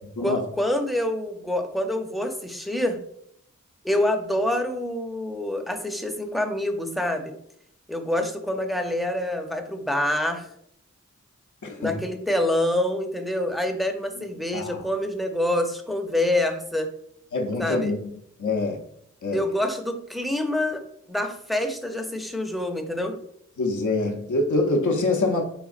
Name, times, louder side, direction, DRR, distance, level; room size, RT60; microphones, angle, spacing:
voice 1, 0.2-3.0 3.8-7.3 7.9-10.5 11.8-16.9 17.6-17.9 19.3-20.8 21.1-23.2, left 1 dB, ahead, 4 dB, 0.5 m, -26 dB
voice 2, 11.6-12.0 14.5-14.8 17.3-18.0 18.4-18.8 19.2-19.4 23.6-25.4, left 2 dB, 70° left, 2 dB, 0.6 m, -25 dB
4.1 x 3.5 x 2.4 m, 0.71 s
wide cardioid pair, 50°, 31 cm